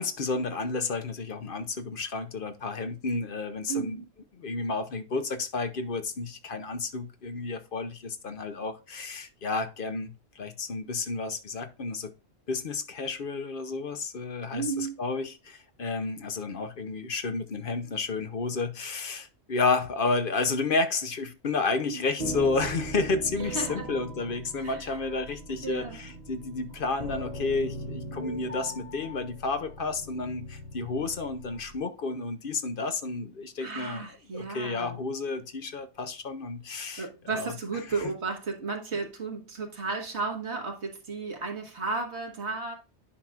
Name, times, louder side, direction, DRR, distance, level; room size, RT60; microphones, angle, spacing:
voice 1, 0.0-4.0 4.4-12.1 12.5-34.0 34.3-37.5, left 3 dB, 55° left, 0.9 m, -31 dB
voice 2, 3.7-4.0 14.5-15.0 21.9-22.1 23.4-23.8 24.6-25.0 25.6-26.0 33.6-35.0 37.0-42.8, right 4 dB, 80° right, 1.9 m, -34 dB
sound 1, 22.2-31.8, right 1 dB, 60° right, 1.7 m, -40 dB
9.9 x 5.8 x 2.4 m
omnidirectional pair, 1.1 m